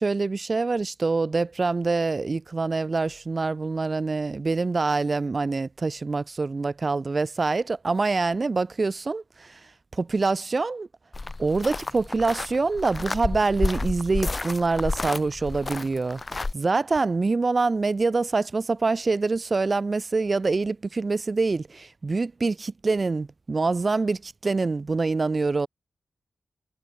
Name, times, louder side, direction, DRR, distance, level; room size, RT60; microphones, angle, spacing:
voice 1, 0.0-9.6 9.9-10.9 11.4-16.2 16.5-25.7, right 3 dB, 30° right, 1.6 m, -25 dB
sound 1, 11.1-16.5, left 3 dB, 25° left, 4.2 m, -31 dB
wide cardioid pair, 150°, 0 cm